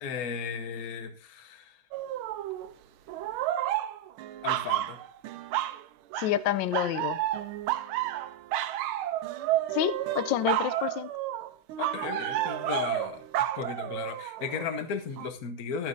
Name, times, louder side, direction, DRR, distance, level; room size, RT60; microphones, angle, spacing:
voice 1, 0.0-1.8 4.4-5.0 11.8-13.2 13.5-15.9, left 6 dB, 50° left, 8 dB, 1.3 m, -35 dB
sound 1, 1.9-2.7 3.1-5.8 6.1-6.4 6.7-14.6 15.2-15.3, right 13 dB, 85° right, 1.5 m, -31 dB
voice 2, 6.2-7.2 9.7-11.1, left 12 dB, 75° left, 14 dB, 1.2 m, -28 dB
13.5 x 8.9 x 2.6 m, 0.43 s
omnidirectional pair, 2.3 m